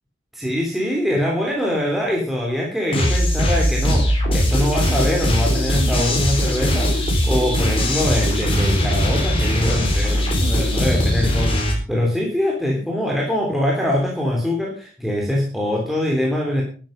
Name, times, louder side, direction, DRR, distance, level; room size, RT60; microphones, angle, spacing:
voice 1, 0.3-16.6, left 1 dB, ahead, -2 dB, 3.3 m, -23 dB
sound 1, 2.9-11.7, equal, 25° left, 4.7 m, -20 dB
13.5 x 12.0 x 5.3 m, 0.39 s
head